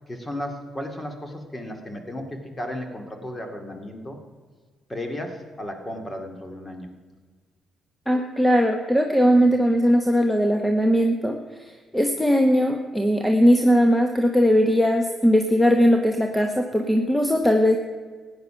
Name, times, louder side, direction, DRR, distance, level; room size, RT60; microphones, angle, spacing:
voice 1, 0.1-4.2 4.9-6.9, left 1 dB, 20° left, 4 dB, 2.2 m, -34 dB
voice 2, 8.1-11.4 11.9-17.8, equal, ahead, 4 dB, 1.1 m, -19 dB
15.0 x 9.7 x 5.8 m, 1.5 s
cardioid pair, 90°, 0 cm